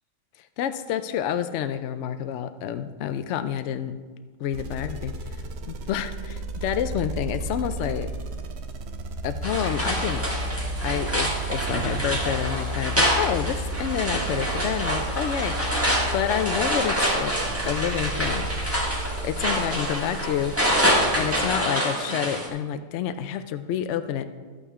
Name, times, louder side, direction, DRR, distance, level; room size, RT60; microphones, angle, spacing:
voice 1, 0.6-3.9 4.4-5.1 5.7-8.1 9.2-10.2 10.8-17.3 17.7-18.5 19.2-20.5 21.2-24.2, left 9 dB, 70° left, 10 dB, 0.8 m, -28 dB
sound 1, 4.5-21.6, right 1 dB, 60° right, 0.8 m, -33 dB
sound 2, 9.4-22.5, equal, 10° right, 1.6 m, -26 dB
12.0 x 8.5 x 3.6 m, 1.5 s
omnidirectional pair, 1.4 m